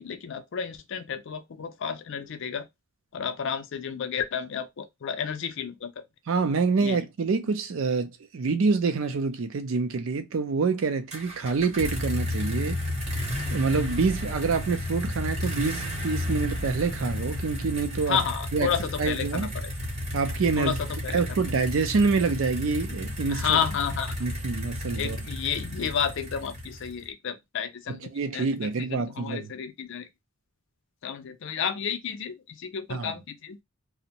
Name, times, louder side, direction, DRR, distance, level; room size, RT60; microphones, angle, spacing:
voice 1, 0.0-2.7 3.1-6.0 6.8-7.0 18.0-19.7 20.6-21.2 23.3-24.2 25.0-30.1 31.0-33.6, left 7 dB, 60° left, 0.4 m, -31 dB
voice 2, 6.3-12.8 13.5-18.2 18.5-18.7 19.0-19.5 20.1-20.8 21.1-23.6 24.2-25.2 27.9-29.5 32.9-33.1, right 4 dB, 60° right, 0.4 m, -26 dB
sound 1, 11.1-27.1, left 1 dB, 30° right, 0.8 m, -32 dB
2.5 x 2.1 x 2.8 m
head